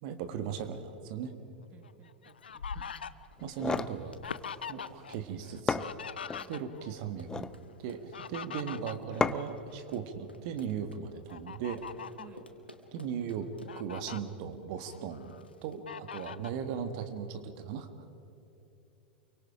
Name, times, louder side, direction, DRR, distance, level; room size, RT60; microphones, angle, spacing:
voice 1, 0.0-1.3 2.7-2.8 3.4-4.1 4.7-5.9 6.5-7.5 7.8-11.8 12.9-13.5 13.8-15.3 15.6-17.9, right 7 dB, 45° right, 9 dB, 1.7 m, -38 dB
voice 2, 1.7-2.7 6.4-6.6 8.7-8.9 12.2-12.4, right 8 dB, 25° right, 7 dB, 1.4 m, -56 dB
Fowl, 1.8-5.1 5.4-7.0 7.9-10.0 10.4-10.6 11.3-12.3 13.0-13.1 13.4-14.2 14.7-15.4 15.9-16.6, left 7 dB, 70° left, 0.6 m, -43 dB
sound 1, 3.4-4.0 5.2-5.3 5.7-6.5 7.1-7.6 9.2-9.6, left 4 dB, 10° left, 0.6 m, -32 dB
Run, 3.5-13.9, left 1 dB, 90° left, 1.7 m, -53 dB
28.5 x 24.0 x 5.1 m, 2.9 s
figure-of-eight pair, 90°, 5 cm